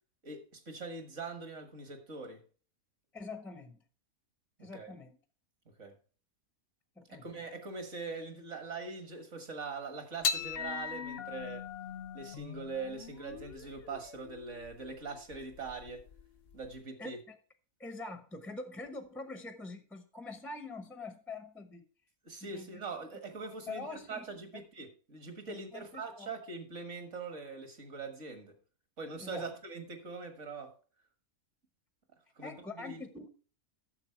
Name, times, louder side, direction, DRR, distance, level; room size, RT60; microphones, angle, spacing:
voice 1, 0.2-2.4 4.6-4.9 5.8-6.0 7.1-11.7 12.1-16.0 16.5-17.2 22.3-28.6 29.0-30.7 32.4-33.0, right 4 dB, 55° right, 7 dB, 1.9 m, -42 dB
voice 2, 3.1-3.8 4.6-5.2 7.0-7.3 17.0-17.4 17.8-21.9 22.4-22.7 23.7-24.2 24.5-24.6 25.5-26.3 29.2-29.5 32.4-33.4, left 3 dB, ahead, 8 dB, 0.7 m, -44 dB
sound 1, 10.2-16.8, left 6 dB, 55° left, 0.7 m, -40 dB
9.8 x 7.0 x 4.5 m, 0.39 s
omnidirectional pair, 1.6 m